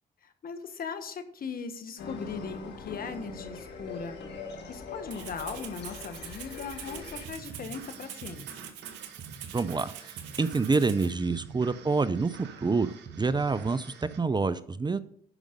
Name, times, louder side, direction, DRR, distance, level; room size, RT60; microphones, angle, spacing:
voice 1, 0.2-4.2 4.7-8.7, left 5 dB, 55° left, 8 dB, 1.3 m, -39 dB
sound 1, 2.0-7.3, left 4 dB, 70° left, 1.4 m, -42 dB
Rattle (instrument), 5.1-11.1, right 10 dB, 90° right, 0.9 m, -44 dB
sound 2, 6.8-14.2, right 6 dB, 75° right, 1.2 m, -46 dB
voice 2, 9.5-15.0, right 4 dB, 25° right, 15 dB, 0.6 m, -27 dB
11.0 x 5.3 x 5.1 m, 0.63 s
supercardioid pair, 55°, 18 cm